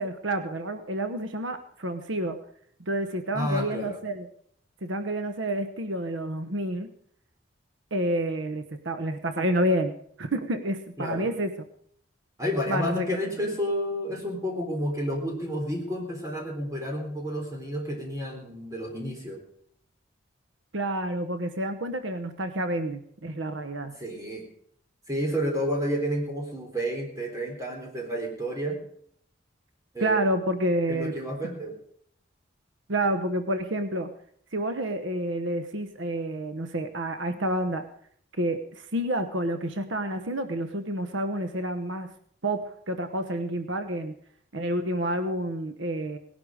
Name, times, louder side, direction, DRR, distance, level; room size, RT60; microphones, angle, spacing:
voice 1, 0.0-2.4 2.9-4.3 4.8-6.9 7.9-9.9 10.2-11.5 12.7-13.2 20.7-23.9 30.0-31.1 32.9-34.1 34.5-37.8 38.4-42.1 42.4-44.1 44.5-46.2, right 1 dB, 80° right, 8 dB, 1.0 m, -29 dB
voice 2, 3.3-4.0 11.0-11.3 12.4-19.4 24.0-24.4 25.1-28.8 29.9-30.2 30.9-31.7, equal, 15° right, 1 dB, 3.9 m, -30 dB
18.5 x 11.5 x 5.0 m, 0.64 s
head